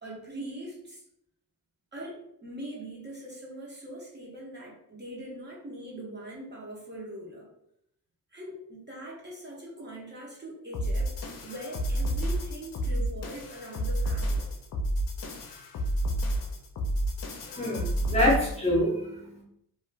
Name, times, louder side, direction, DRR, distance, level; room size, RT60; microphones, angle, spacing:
voice 1, 0.0-1.0 1.9-7.5 8.3-11.1 11.4-14.5, right 1 dB, 30° right, -3 dB, 0.7 m, -41 dB
sound 1, 10.7-18.7, right 1 dB, 60° left, 0.5 m, -30 dB
voice 2, 17.5-19.4, left 1 dB, 15° left, -5 dB, 0.6 m, -26 dB
2.4 x 2.4 x 3.1 m, 0.76 s
wide cardioid pair, 155°, 38 cm